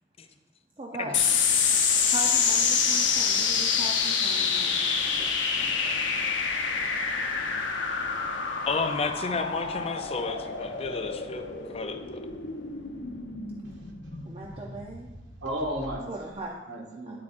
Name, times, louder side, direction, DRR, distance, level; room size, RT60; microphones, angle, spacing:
voice 1, 0.8-1.2 1.8-6.3 14.2-15.1 16.1-16.6 17.1-17.2, right 2 dB, 30° right, -2 dB, 0.7 m, -40 dB
sound 1, 1.1-15.9, left 6 dB, 85° left, 1.0 m, -27 dB
voice 2, 8.6-12.2, left 4 dB, 30° left, 6 dB, 0.5 m, -32 dB
voice 3, 13.6-14.8 15.4-16.4 16.7-17.2, equal, 90° right, -2 dB, 2.0 m, -36 dB
9.7 x 8.2 x 2.6 m, 1.1 s
head